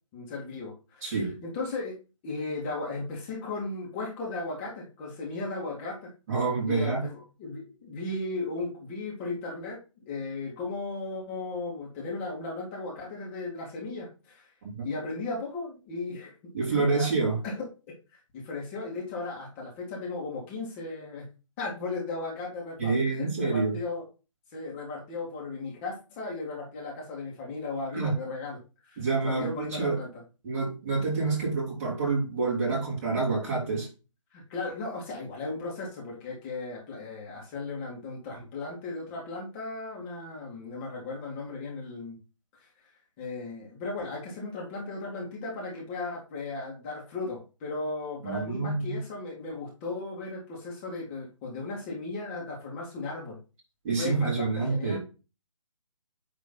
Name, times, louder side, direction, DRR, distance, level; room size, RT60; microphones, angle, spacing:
voice 1, 0.1-2.0 2.2-6.1 6.7-14.5 14.8-17.1 17.4-18.0 18.3-21.2 21.6-24.0 24.5-30.1 34.3-42.2 42.6-42.7 43.2-53.4 54.0-55.0, left 3 dB, 20° left, 2.0 m, -36 dB
voice 2, 1.0-1.3 6.3-7.1 14.7-14.9 16.5-17.4 22.8-23.8 27.9-28.2 29.0-30.0 30.4-33.9 48.2-49.0 53.8-55.0, right 4 dB, 25° right, 3.1 m, -27 dB
9.5 x 3.7 x 4.0 m
figure-of-eight pair, 150°, 17 cm